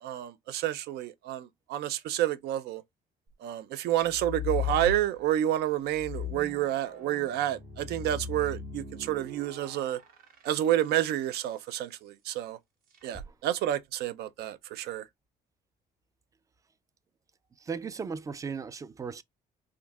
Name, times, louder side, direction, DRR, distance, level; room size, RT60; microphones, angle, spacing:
voice 1, 0.0-2.8 3.4-10.0 10.4-12.6 13.0-15.0, right 12 dB, 75° right, 0.5 m, -29 dB
sound 1, 4.0-5.4 5.9-11.4 12.9-13.3, left 7 dB, 55° right, 1.2 m, -38 dB
voice 2, 17.6-19.2, right 5 dB, 20° right, 0.3 m, -36 dB
3.7 x 2.7 x 2.3 m
cardioid pair, 110°, 17 cm